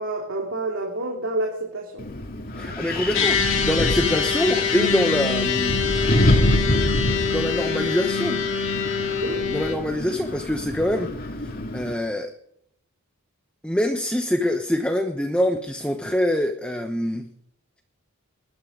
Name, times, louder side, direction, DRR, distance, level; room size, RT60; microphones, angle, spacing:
voice 1, 0.0-2.0 9.2-9.4, right 2 dB, 60° right, 0 dB, 3.1 m, -28 dB
Wind, 2.0-11.9, left 1 dB, 40° left, 2.3 m, -26 dB
voice 2, 2.5-5.8 7.3-8.4 9.5-11.1 11.4-12.3 13.6-17.3, left 1 dB, 5° left, 5 dB, 1.0 m, -25 dB
sound 1, 3.1-9.7, left 5 dB, 60° left, 2.9 m, -24 dB
21.0 x 12.5 x 5.3 m, 0.71 s
head